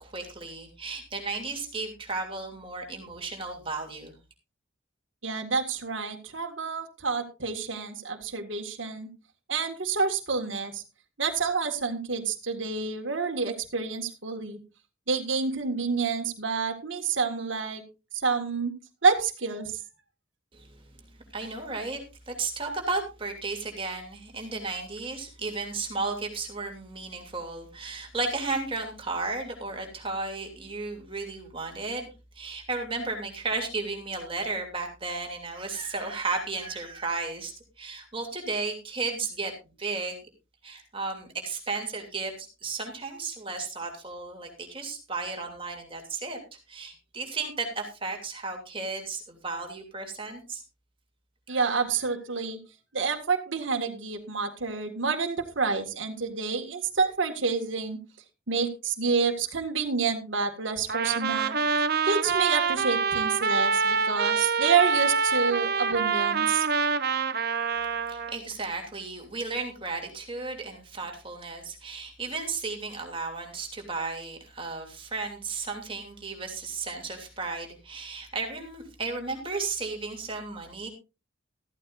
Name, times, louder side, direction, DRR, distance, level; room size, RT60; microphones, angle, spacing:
voice 1, 0.0-4.1 20.5-20.8 21.3-22.0 22.3-32.1 32.3-37.5 37.8-40.2 40.6-46.4 46.7-50.6 67.8-80.9, right 3 dB, 25° right, 2 dB, 2.8 m, -34 dB
voice 2, 5.2-9.1 9.5-10.8 11.2-14.6 15.1-17.8 18.2-18.7 19.0-19.8 51.5-52.6 52.9-58.0 58.5-61.6 62.0-66.7, right 5 dB, 70° right, 3 dB, 1.9 m, -28 dB
Trumpet, 60.9-68.4, right 5 dB, 50° right, 0.8 m, -26 dB
14.5 x 14.0 x 2.6 m, 0.29 s
head